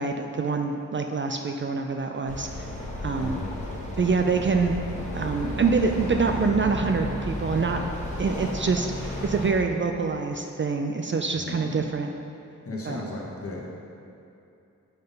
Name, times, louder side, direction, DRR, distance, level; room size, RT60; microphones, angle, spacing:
voice 1, 0.0-2.7 3.0-3.4 4.0-4.8 5.1-7.9 8.2-12.1 12.8-13.0, right 4 dB, 40° right, 4 dB, 0.4 m, -26 dB
sound 1, 2.3-9.5, left 1 dB, 20° left, 1.5 m, -33 dB
voice 2, 3.1-3.5 11.3-11.8 12.6-13.7, left 2 dB, 45° left, -3 dB, 1.3 m, -35 dB
7.9 x 3.7 x 5.2 m, 2.6 s
wide cardioid pair, 80°, 32 cm